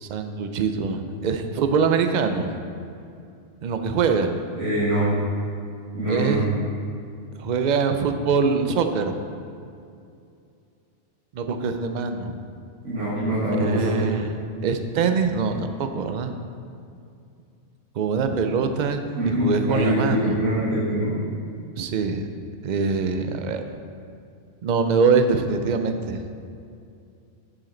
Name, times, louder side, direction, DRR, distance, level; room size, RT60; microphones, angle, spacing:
voice 1, 0.0-2.5 3.6-4.3 6.1-6.5 7.4-9.1 11.3-12.4 13.6-14.4 14.6-16.3 18.0-19.0 19.4-20.5 21.8-22.3 22.6-23.6 24.6-26.3, right 5 dB, 55° right, 7 dB, 0.5 m, -23 dB
voice 2, 4.6-5.1 5.9-6.4 12.8-14.0 19.2-21.2, equal, 80° right, -12 dB, 2.3 m, -23 dB
7.7 x 7.4 x 3.8 m, 2.5 s
omnidirectional pair, 1.2 m